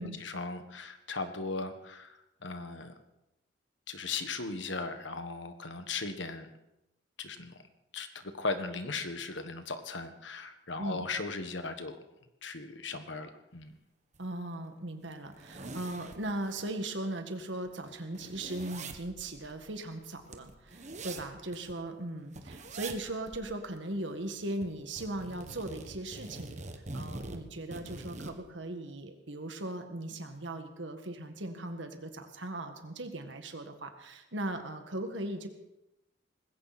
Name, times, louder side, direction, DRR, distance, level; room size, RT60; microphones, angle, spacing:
voice 1, 0.0-2.2 2.4-2.9 3.9-6.5 7.2-7.6 7.9-8.1 8.4-12.0 12.4-13.7, left 3 dB, 70° left, 8 dB, 1.5 m, -37 dB
sound 1, 14.1-14.2 14.6-14.7 15.1-16.7 17.1-17.2 17.4-21.8 22.3-23.0 23.3-23.4 23.8-24.7 25.0-28.4, right 2 dB, 40° right, 1.4 m, -44 dB
voice 2, 14.2-26.6 26.9-35.5, right 1 dB, 70° right, 6 dB, 1.9 m, -38 dB
20.0 x 16.5 x 4.3 m, 0.92 s
head